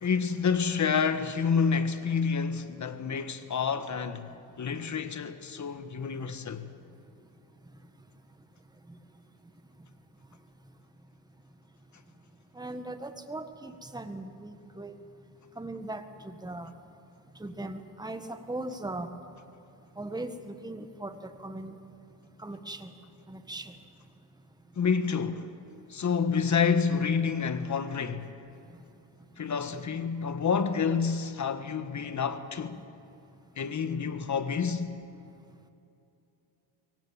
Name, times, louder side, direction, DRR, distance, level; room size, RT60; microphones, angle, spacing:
voice 1, 0.0-4.3 4.6-6.7 24.7-25.6 25.9-28.4 29.4-32.8 33.6-34.9, left 6 dB, 35° left, 1.5 m, -28 dB
voice 2, 12.5-15.0 15.6-16.7 17.4-19.1 20.0-21.7 22.4-22.9 23.3-23.7, right 2 dB, 10° right, 1.7 m, -39 dB
23.5 x 18.5 x 7.5 m
cardioid pair, 90°, 49 cm